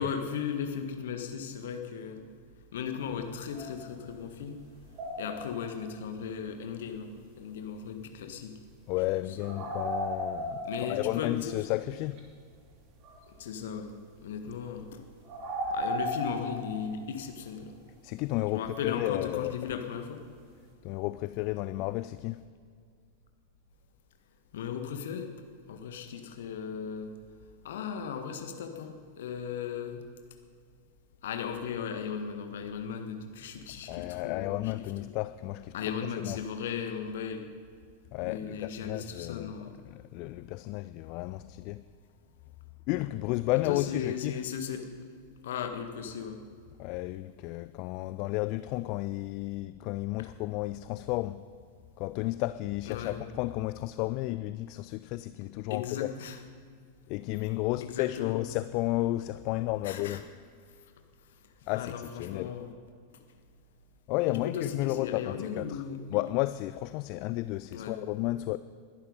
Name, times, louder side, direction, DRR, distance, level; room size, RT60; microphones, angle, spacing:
voice 1, 0.0-2.2 2.7-4.5 5.2-8.6 9.6-9.7 10.6-11.5 13.4-13.9 14.2-15.0 15.7-17.7 18.5-20.2 24.5-25.3 25.7-27.1 27.6-30.0 31.2-34.7 35.7-37.4 38.2-39.7 43.7-44.9 45.4-46.4 52.9-53.2 55.7-56.4 57.8-58.4 59.8-60.2 61.7-62.7 64.3-66.2 67.7-68.0, left 7 dB, 60° left, 6 dB, 1.6 m, -36 dB
sound 1, 3.0-3.2 3.5-4.4 4.8-5.8 9.4-11.4 12.2-12.3 12.5-12.6 13.0-13.3 14.2-14.7 15.2-17.2 19.5-19.6 20.3-20.4, equal, 35° right, 2.7 m, -35 dB
voice 2, 8.9-12.2 18.0-19.7 20.8-22.4 33.9-35.7 36.2-36.4 38.1-39.5 39.8-41.8 42.9-44.4 46.8-51.4 52.0-56.1 57.1-60.2 61.7-62.5 64.1-65.8 66.1-68.6, left 18 dB, 45° left, 14 dB, 0.4 m, -32 dB
21.0 x 11.0 x 5.3 m, 2.1 s
figure-of-eight pair, 90°, 0 cm